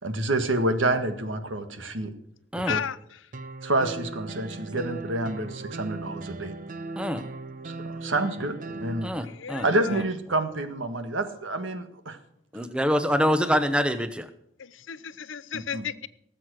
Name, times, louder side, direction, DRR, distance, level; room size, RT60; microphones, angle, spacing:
voice 1, 0.0-2.1 2.6-2.8 3.6-6.5 7.6-9.2 9.6-12.2 15.5-15.8, right 2 dB, 80° right, 1.6 m, -28 dB
voice 2, 2.7-3.2 9.2-10.0 14.6-15.9, left 8 dB, 85° left, 0.7 m, -34 dB
sound 1, 3.3-9.1, right 3 dB, 45° right, 0.7 m, -38 dB
voice 3, 9.0-9.7 12.5-14.3, equal, 5° right, 0.8 m, -25 dB
18.5 x 7.7 x 6.2 m
head